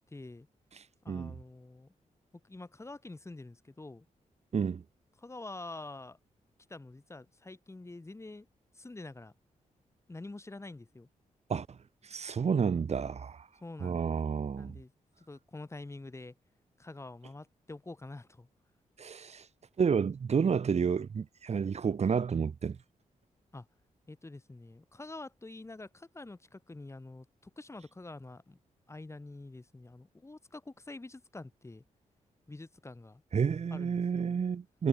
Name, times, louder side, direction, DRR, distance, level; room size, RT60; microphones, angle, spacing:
voice 1, 0.1-0.5 1.0-1.9 2.4-4.1 5.2-6.2 6.7-8.5 8.7-9.3 10.1-11.1 13.6-14.1 14.6-14.9 15.2-16.3 16.8-18.5 23.5-23.7 24.1-28.6 28.9-31.8 32.5-33.2 33.7-34.4, left 2 dB, 20° left, 4.7 m, -46 dB
voice 2, 12.1-13.5 13.8-14.8 19.0-19.4 19.8-22.8 33.3-34.9, right 6 dB, 50° right, 2.2 m, -30 dB
cardioid pair, 100°, 14 cm